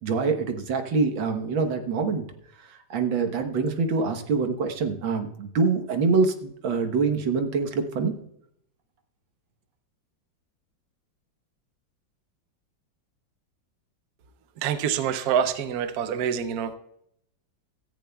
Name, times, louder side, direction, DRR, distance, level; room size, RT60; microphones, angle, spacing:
voice 1, 0.0-2.3 2.7-8.1, right 4 dB, 85° right, 6 dB, 1.9 m, -25 dB
voice 2, 14.6-16.7, right 8 dB, 60° right, 10 dB, 1.1 m, -26 dB
16.5 x 14.5 x 2.3 m, 0.73 s
omnidirectional pair, 2.1 m